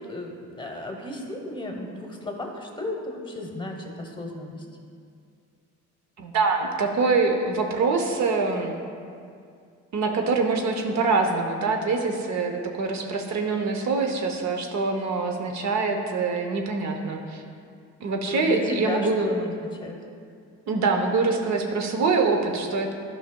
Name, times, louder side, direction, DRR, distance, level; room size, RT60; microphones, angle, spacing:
voice 1, 0.0-4.6 18.2-19.5 19.8-20.0, left 1 dB, 15° left, 1 dB, 0.9 m, -33 dB
voice 2, 6.2-8.8 9.9-17.4 18.0-19.3 20.7-22.9, right 4 dB, 65° right, 4 dB, 0.8 m, -24 dB
11.0 x 5.5 x 2.2 m, 2.3 s
cardioid pair, 90°, 30 cm